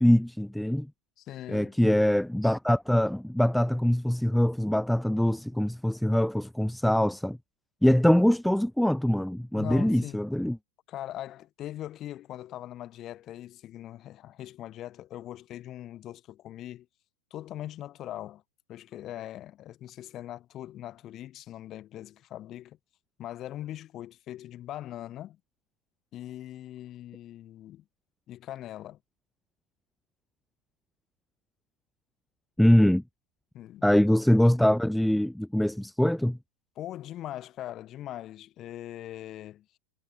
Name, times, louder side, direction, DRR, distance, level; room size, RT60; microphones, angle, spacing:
voice 1, 0.0-0.9 1.5-7.4 7.8-10.6 32.6-33.0 33.8-36.4, left 1 dB, ahead, 0.4 m, -23 dB
voice 2, 1.2-2.1 9.5-10.2 10.9-16.9 17.3-18.4 18.7-22.8 23.2-25.4 26.1-27.8 28.3-29.0 33.5-33.8 36.8-39.7, left 13 dB, 30° left, 1.7 m, -41 dB
figure-of-eight pair, 90°, 0 cm